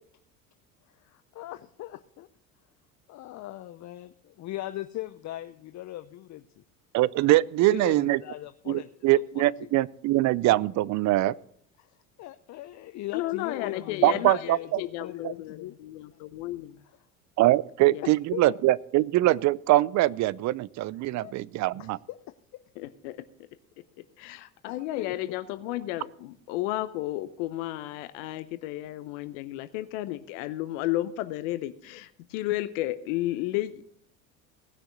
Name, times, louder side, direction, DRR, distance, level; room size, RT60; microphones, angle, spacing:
voice 1, 0.9-2.3 3.1-6.6 7.7-8.9 9.3-9.7 11.8-15.8 16.1-16.2 18.0-18.4 21.2-21.3 21.8-22.2 24.7-25.4, left 15 dB, 45° left, 11 dB, 0.6 m, -39 dB
voice 2, 6.9-8.2 8.7-11.3 14.0-14.8 15.2-15.3 17.4-22.0, right 16 dB, 45° right, 22 dB, 0.5 m, -23 dB
voice 3, 13.1-16.8 17.9-18.0 22.8-23.2 24.2-33.8, left 15 dB, 70° left, 12 dB, 0.8 m, -33 dB
18.0 x 6.4 x 6.2 m, 0.66 s
hypercardioid pair, 70°, 40 cm